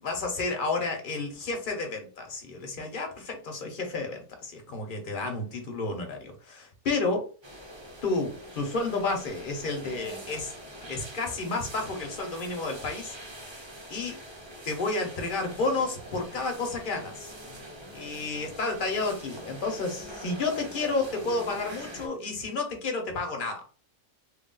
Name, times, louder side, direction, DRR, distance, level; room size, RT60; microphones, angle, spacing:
voice 1, 0.0-7.3 8.0-10.5 10.9-13.6 13.9-14.2 14.6-17.3 17.9-23.6, left 3 dB, 45° left, 1.0 m, -31 dB
sound 1, 7.4-22.1, equal, 30° right, 0.6 m, -44 dB
3.2 x 2.4 x 3.8 m
omnidirectional pair, 1.3 m